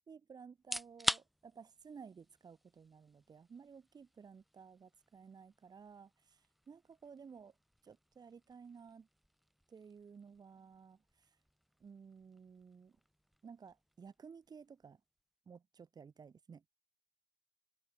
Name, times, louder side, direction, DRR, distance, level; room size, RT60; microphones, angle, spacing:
voice 1, 0.1-6.4 6.7-7.5 7.8-9.1 9.7-11.3 11.8-13.0 13.4-15.0 15.5-16.7, right 6 dB, 35° right, 1.8 m, -55 dB
sound 1, 0.5-15.4, equal, ahead, 2.6 m, -47 dB
cardioid pair, 140°, 12 cm